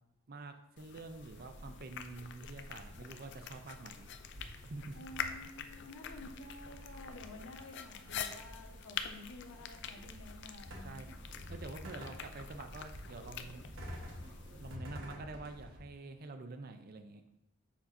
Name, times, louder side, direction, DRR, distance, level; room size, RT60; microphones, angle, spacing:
voice 1, 0.3-4.1 4.5-5.0 10.8-11.1 11.5-13.6 14.4-17.2, right 3 dB, 45° right, 7 dB, 0.5 m, -47 dB
sound 1, 0.8-14.8, left 8 dB, 55° left, 0.4 m, -46 dB
sound 2, 1.1-15.8, equal, 60° right, 1.1 m, -50 dB
voice 2, 4.9-11.0, left 2 dB, 80° left, 2 dB, 1.1 m, -51 dB
7.1 x 5.4 x 2.6 m, 0.85 s
head